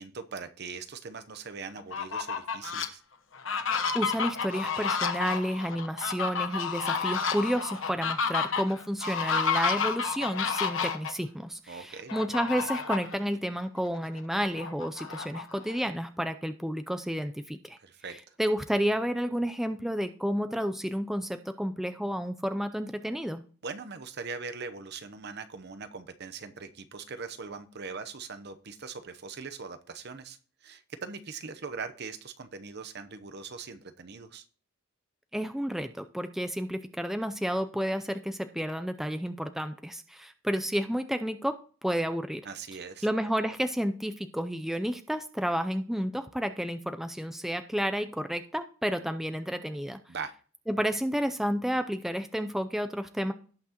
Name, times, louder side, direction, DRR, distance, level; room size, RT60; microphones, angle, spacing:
voice 1, 0.0-3.0 11.7-12.1 17.8-18.4 23.6-34.4 42.4-43.1 50.1-50.3, right 5 dB, 55° right, 10 dB, 0.8 m, -41 dB
Fowl, 1.8-2.9 3.3-11.1 12.1-13.2 13.6-13.7 14.1-15.8, left 5 dB, 70° left, 1.1 m, -30 dB
voice 2, 3.9-17.8 18.4-23.4 35.3-41.6 41.8-42.4 43.0-50.0 50.7-53.3, equal, ahead, 8 dB, 0.5 m, -31 dB
17.5 x 5.9 x 2.9 m, 0.41 s
head